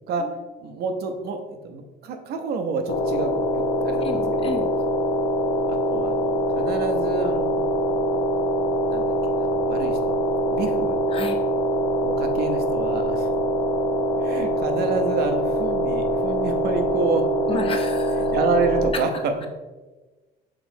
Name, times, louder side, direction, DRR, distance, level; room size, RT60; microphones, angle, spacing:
voice 1, 0.6-4.6 5.7-7.6 8.9-10.2 10.5-11.0 12.0-13.3 14.2-17.2 17.5-17.8 18.3-19.3, right 4 dB, 70° right, 6 dB, 0.6 m, -28 dB
sound 1, 2.9-18.9, equal, 75° left, 0.5 m, -23 dB
voice 2, 4.0-4.7 11.1-11.4 17.5-18.2, left 3 dB, 35° left, 5 dB, 0.6 m, -31 dB
4.9 x 3.1 x 2.7 m, 1.2 s
cardioid pair, 110°, 17 cm